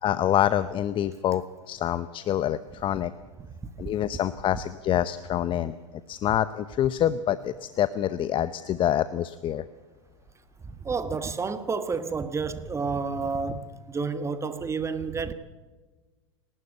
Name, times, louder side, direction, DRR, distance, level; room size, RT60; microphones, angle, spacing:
voice 1, 0.0-3.1 3.8-5.7 6.1-9.6, left 11 dB, 35° left, 0.8 m, -26 dB
voice 2, 10.8-15.3, right 4 dB, 20° right, 1.3 m, -30 dB
28.0 x 12.5 x 8.1 m
hypercardioid pair, 95°, 16 cm